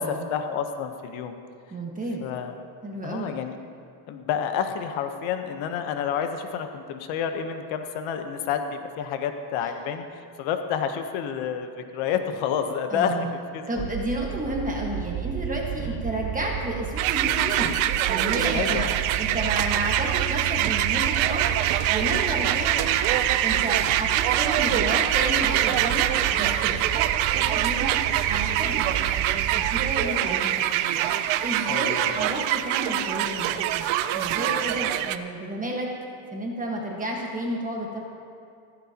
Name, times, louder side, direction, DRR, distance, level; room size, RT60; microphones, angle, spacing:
voice 1, 0.3-1.3 2.2-2.5 3.0-3.5 4.1-13.6 15.8-16.0 18.5-18.9 31.7-32.3, left 7 dB, 75° left, 7 dB, 1.1 m, -29 dB
voice 2, 1.7-2.3 2.8-3.4 9.6-9.7 12.9-13.4 13.7-17.8 18.1-18.9 19.2-21.5 21.9-22.8 23.4-27.1 27.3-30.5 31.4-35.9 36.3-38.0, right 1 dB, 15° right, -1 dB, 1.4 m, -31 dB
sound 1, 13.8-30.1, right 10 dB, 40° right, 0.6 m, -33 dB
sound 2, 17.0-35.2, right 12 dB, 80° right, 0.7 m, -24 dB
15.5 x 14.0 x 2.9 m, 2.5 s
cardioid pair, 145°, 48 cm